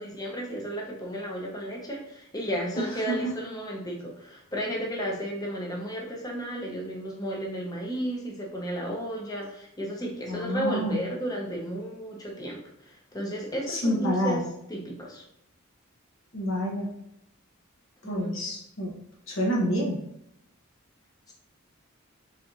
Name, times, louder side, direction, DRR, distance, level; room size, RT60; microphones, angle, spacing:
voice 1, 0.0-14.4 14.7-15.2 18.0-18.4 21.3-21.4, equal, 20° left, -1 dB, 0.7 m, -33 dB
voice 2, 2.8-3.3 10.3-11.1 13.7-14.4 16.3-16.9 18.0-19.0 19.3-20.0, equal, 65° left, -3 dB, 1.1 m, -28 dB
4.3 x 3.5 x 2.6 m, 0.76 s
head